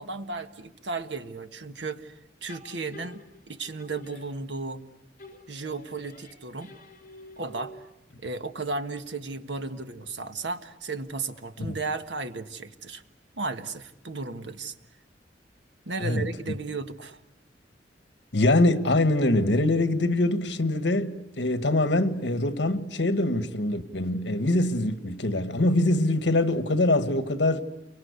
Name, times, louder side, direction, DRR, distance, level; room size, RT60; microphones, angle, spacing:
voice 1, 0.0-2.1 2.4-3.2 3.5-4.8 5.5-6.7 7.4-7.8 8.2-13.0 13.4-14.8 15.8-17.2, right 3 dB, 85° right, 1.5 m, -34 dB
sound 1, 2.5-4.8 5.2-8.0, left 1 dB, 50° left, 6.0 m, -49 dB
voice 2, 18.3-27.6, left 2 dB, 75° left, 1.5 m, -24 dB
30.0 x 23.5 x 8.2 m
head